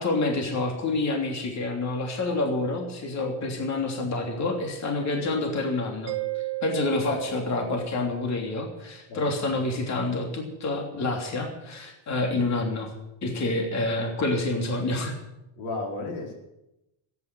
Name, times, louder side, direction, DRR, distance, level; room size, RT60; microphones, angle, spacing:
voice 1, 0.0-12.9 13.2-15.2, left 2 dB, 35° left, 2 dB, 3.2 m, -28 dB
Mallet percussion, 6.1-8.6, right 20 dB, 60° right, 1.2 m, -34 dB
voice 2, 15.6-16.3, left 3 dB, 90° left, 1 dB, 4.6 m, -33 dB
13.5 x 9.9 x 9.3 m, 0.89 s
cardioid pair, 140°, 45 cm